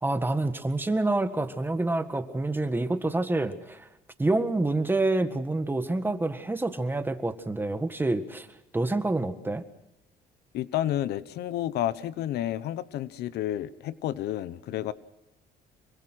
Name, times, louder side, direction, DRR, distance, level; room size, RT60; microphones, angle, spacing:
voice 1, 0.0-3.9 4.2-8.5 8.7-9.6, right 2 dB, 10° right, 9 dB, 1.7 m, -27 dB
voice 2, 10.5-14.9, left 12 dB, 75° left, 16 dB, 1.0 m, -30 dB
26.0 x 23.0 x 6.3 m, 0.86 s
cardioid pair, 110°, 17 cm